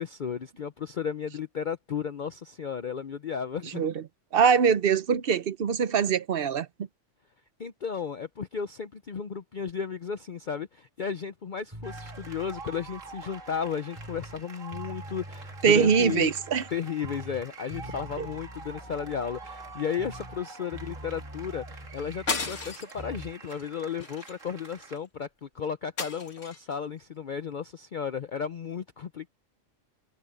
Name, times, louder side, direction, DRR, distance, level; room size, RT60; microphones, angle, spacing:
voice 1, 0.0-3.8 7.6-16.3 16.7-29.3, left 7 dB, 45° left, 0.8 m, -34 dB
voice 2, 3.7-4.0 4.3-6.7 15.6-16.6 18.2-18.3, right 7 dB, 50° right, 0.9 m, -23 dB
sound 1, 11.7-14.4 14.7-16.8 17.0-20.5 20.7-23.3, right 1 dB, 20° right, 3.1 m, -45 dB
sound 2, 11.8-25.0, right 4 dB, 80° right, 2.4 m, -46 dB
sound 3, 22.3-23.0 23.5-23.7 24.0-25.0 26.0-26.7, left 4 dB, 70° left, 2.6 m, -34 dB
omnidirectional pair, 1.3 m